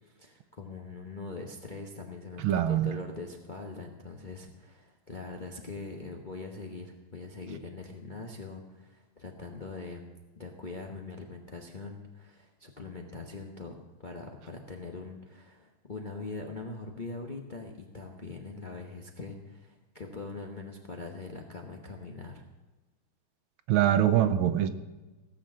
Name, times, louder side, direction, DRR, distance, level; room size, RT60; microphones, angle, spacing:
voice 1, 0.0-10.1 10.4-22.4, left 3 dB, 35° left, 1 dB, 0.7 m, -42 dB
voice 2, 2.4-2.9 23.7-24.7, right 11 dB, 75° right, 11 dB, 1.5 m, -23 dB
16.0 x 6.8 x 7.5 m, 1.2 s
omnidirectional pair, 2.3 m